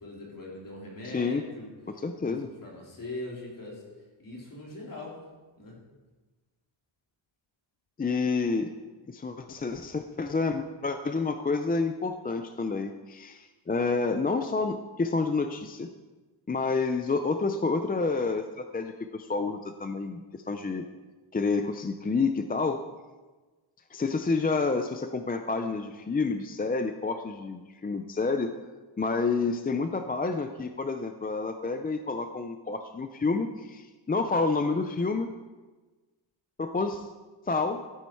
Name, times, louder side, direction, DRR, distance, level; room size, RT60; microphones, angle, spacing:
voice 1, 0.0-3.8 4.2-5.2 5.6-5.8, left 1 dB, 40° left, -3 dB, 3.6 m, -41 dB
voice 2, 1.0-1.4 1.9-2.5 8.0-8.7 9.1-15.9 16.5-20.9 21.3-22.8 23.9-28.5 29.0-35.3 36.6-37.1 37.5-37.8, left 4 dB, 20° left, 7 dB, 0.4 m, -29 dB
13.5 x 9.7 x 4.6 m, 1.3 s
wide cardioid pair, 175°, 49 cm